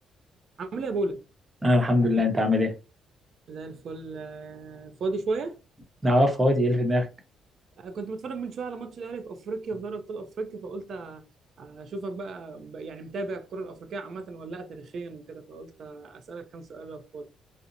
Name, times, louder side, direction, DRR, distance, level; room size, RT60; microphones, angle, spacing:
voice 1, 0.6-1.2 3.5-5.6 7.8-11.2 11.6-17.3, right 3 dB, 60° right, 0.5 m, -35 dB
voice 2, 1.6-2.7 6.0-7.1, left 1 dB, 20° right, 0.8 m, -22 dB
2.8 x 2.0 x 2.5 m
cardioid pair, 90°, 0 cm